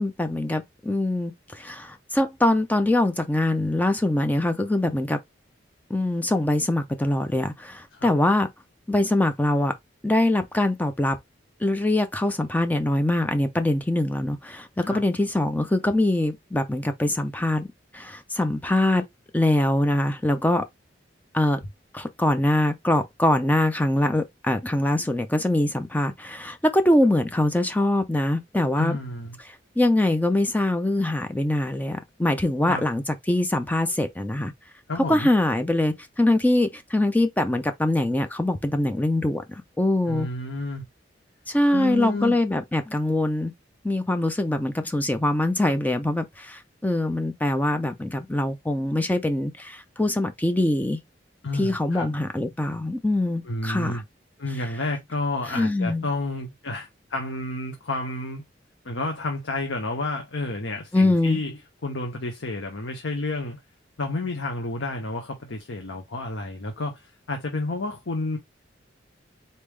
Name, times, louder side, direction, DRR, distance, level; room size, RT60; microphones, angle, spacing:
voice 1, 0.0-5.2 5.9-8.5 8.9-9.7 10.0-11.2 11.6-17.7 17.9-19.1 19.3-20.7 21.3-21.6 21.9-29.0 29.8-34.5 35.1-40.3 41.5-43.5 43.8-51.0 51.6-54.0 55.5-56.1 60.9-61.4, left 1 dB, 10° left, 0.5 m, -23 dB
voice 2, 28.7-29.4 32.7-32.8 34.9-35.3 40.1-40.8 41.7-42.4 51.4-52.1 53.4-54.0 54.4-58.5 58.8-63.6 64.0-68.4, left 2 dB, 90° left, 1.0 m, -30 dB
4.2 x 3.5 x 3.2 m
head